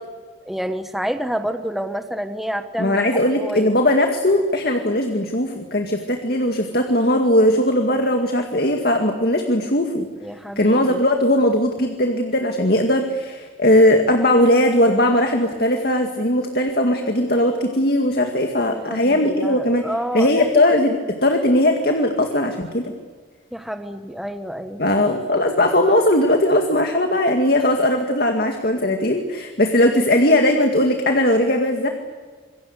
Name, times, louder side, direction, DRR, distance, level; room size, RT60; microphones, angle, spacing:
voice 1, 0.5-3.0 3.3-3.7 10.2-11.0 18.7-20.5 23.5-24.8, equal, ahead, 7 dB, 1.2 m, -28 dB
voice 2, 2.8-10.1 10.6-19.9 20.1-22.9 24.8-31.9, left 1 dB, 50° left, 4 dB, 2.1 m, -19 dB
27.0 x 23.5 x 8.3 m, 1.5 s
head